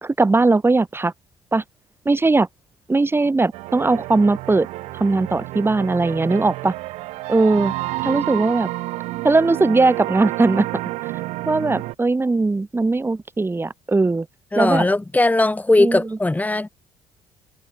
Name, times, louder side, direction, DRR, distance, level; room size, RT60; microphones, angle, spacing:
voice 1, 0.0-1.1 1.5-1.6 2.1-2.5 2.9-4.7 5.0-6.7 7.3-7.7 8.0-8.7 9.2-10.7 11.5-14.3 14.6-14.9 15.8-16.0, right 3 dB, 20° right, 3.7 m, -19 dB
sound 1, 3.5-11.9, right 19 dB, 80° right, 2.6 m, -30 dB
voice 2, 14.5-16.7, left 2 dB, 15° left, 3.3 m, -18 dB
supercardioid pair, 70°, 11 cm